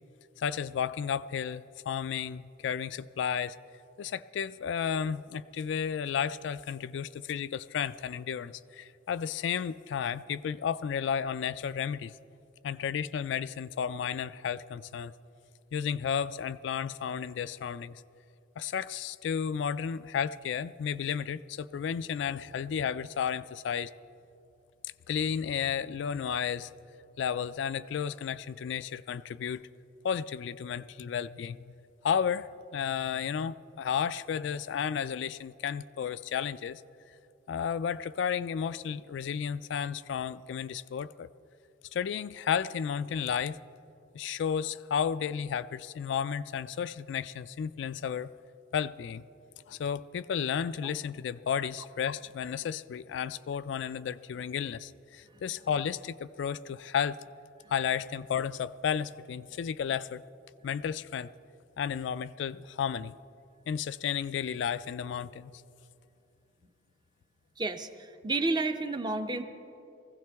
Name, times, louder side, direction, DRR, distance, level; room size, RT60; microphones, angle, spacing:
voice 1, 0.4-3.6 4.0-12.1 12.6-15.1 15.7-18.0 18.6-23.9 25.1-26.7 27.2-29.7 30.0-31.7 32.0-36.8 37.5-41.3 41.9-43.6 44.1-48.3 48.7-49.2 49.7-57.2 57.7-60.2 60.6-61.3 61.8-63.1 63.7-65.5, left 7 dB, 70° left, 15 dB, 0.3 m, -33 dB
voice 2, 67.6-69.4, right 3 dB, 25° right, 8 dB, 0.6 m, -31 dB
20.5 x 15.5 x 3.5 m, 2.8 s
head